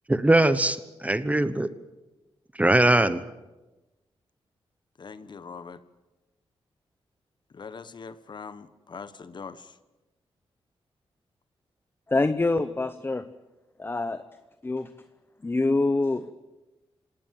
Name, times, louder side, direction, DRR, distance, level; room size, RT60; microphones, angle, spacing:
voice 1, 0.1-1.7 2.6-3.2, right 1 dB, 15° right, 14 dB, 1.1 m, -21 dB
voice 2, 5.0-5.8 7.5-9.7, left 5 dB, 50° left, 14 dB, 1.2 m, -42 dB
voice 3, 12.1-13.3 13.8-14.3 14.6-14.9 15.4-16.3, left 2 dB, 20° left, 12 dB, 0.8 m, -25 dB
26.5 x 18.0 x 7.6 m, 1.1 s
cardioid pair, 90°, 10 cm